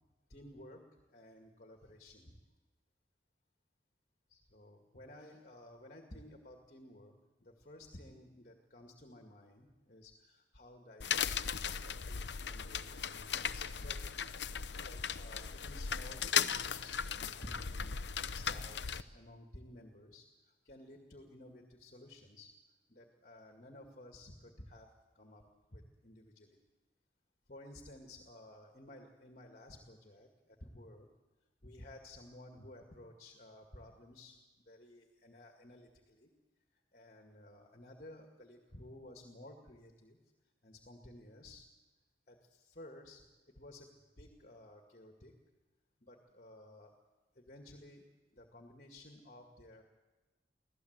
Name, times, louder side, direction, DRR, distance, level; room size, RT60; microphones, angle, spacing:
voice 1, 0.3-2.4 4.3-7.2 7.4-14.1 14.8-18.0 18.3-22.5 22.9-25.4 25.7-26.6 27.5-31.1 31.6-36.3 36.9-40.2 40.6-41.7 42.3-43.2 43.6-45.3 46.0-46.9 47.4-48.1 48.3-49.8, left 1 dB, 45° left, 3 dB, 2.1 m, -54 dB
sound 1, 11.0-19.0, left 7 dB, 75° left, 0.8 m, -37 dB
25.5 x 16.5 x 8.1 m, 1.2 s
head